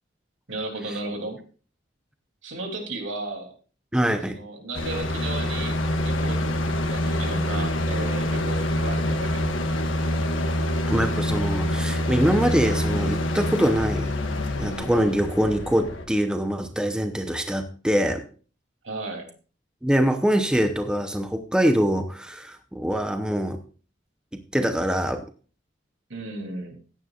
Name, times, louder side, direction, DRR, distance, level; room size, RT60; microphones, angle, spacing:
voice 1, 0.5-1.4 2.4-3.5 4.2-5.8 6.0-9.4 18.8-19.3 26.1-26.7, right 2 dB, 85° right, 2 dB, 3.0 m, -34 dB
voice 2, 3.9-4.4 10.9-14.1 14.6-18.3 19.8-23.6 24.3-25.2, equal, 5° right, 6 dB, 0.8 m, -24 dB
sound 1, 4.7-16.0, left 1 dB, 90° left, 1.5 m, -26 dB
15.0 x 9.9 x 2.4 m, 0.38 s
head